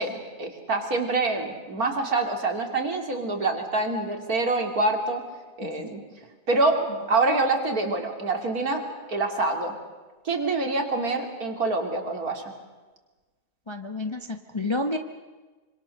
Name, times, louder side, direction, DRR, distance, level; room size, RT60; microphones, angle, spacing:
voice 1, 0.0-5.2 5.6-6.0 6.5-8.8 9.1-9.7 10.2-12.4, right 3 dB, 65° right, 3 dB, 3.3 m, -26 dB
voice 2, 13.7-15.0, left 2 dB, 20° left, 5 dB, 1.0 m, -29 dB
26.0 x 25.5 x 6.5 m, 1.3 s
omnidirectional pair, 1.7 m